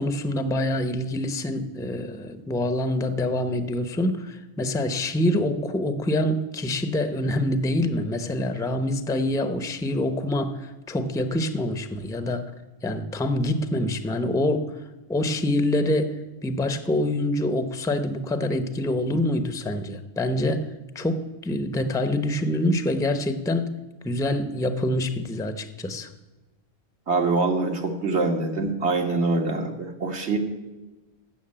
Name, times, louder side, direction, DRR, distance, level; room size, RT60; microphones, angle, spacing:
voice 1, 0.0-12.5 12.8-14.7 15.1-20.6 20.9-23.7 24.0-26.1, left 1 dB, 5° left, 9 dB, 0.6 m, -26 dB
voice 2, 27.1-30.4, right 3 dB, 70° right, 3 dB, 1.8 m, -24 dB
14.0 x 6.4 x 8.7 m, 1.1 s
omnidirectional pair, 1.2 m